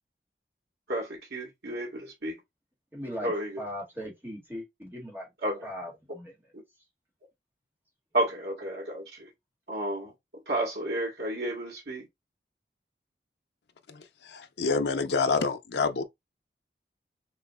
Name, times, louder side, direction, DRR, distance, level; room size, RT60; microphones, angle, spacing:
voice 1, 0.9-2.4 3.2-3.6 5.4-5.7 8.1-9.3 9.7-10.1 10.5-12.1, right 1 dB, 75° right, 1.8 m, -31 dB
voice 2, 2.9-5.3 5.6-6.3, equal, 15° right, 1.9 m, -39 dB
voice 3, 13.9-16.0, left 4 dB, 80° left, 0.7 m, -28 dB
6.4 x 3.0 x 2.4 m
head